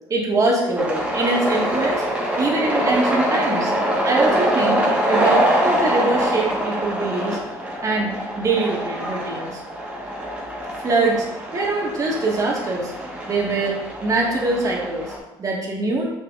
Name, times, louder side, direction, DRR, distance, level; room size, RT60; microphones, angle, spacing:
voice 1, 0.1-2.0 2.4-3.7 4.0-7.4 7.8-9.6 10.8-11.3 11.5-12.9 13.3-16.1, right 2 dB, 35° right, -2 dB, 1.9 m, -23 dB
sound 1, 0.8-15.2, right 1 dB, 15° right, 1.7 m, -24 dB
6.3 x 6.1 x 2.6 m, 0.92 s
supercardioid pair, 90°, 10 cm